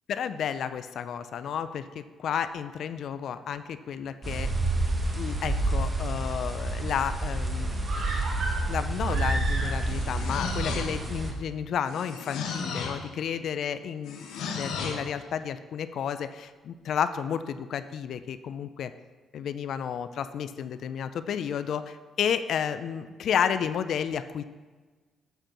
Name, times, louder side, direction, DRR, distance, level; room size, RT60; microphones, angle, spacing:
voice 1, 0.1-4.5 5.1-7.9 8.7-14.3 14.6-18.9 19.3-24.4, left 8 dB, 70° left, 12 dB, 0.4 m, -31 dB
sound 1, 4.2-11.3, right 2 dB, 25° right, 1.2 m, -29 dB
sound 2, 7.8-10.1 10.4-10.5, right 2 dB, 50° right, 1.8 m, -34 dB
sound 3, 9.6-11.2 11.9-13.1 14.1-15.1, left 4 dB, 90° left, 1.0 m, -35 dB
7.9 x 4.4 x 6.1 m, 1.3 s
cardioid pair, 90°, 0 cm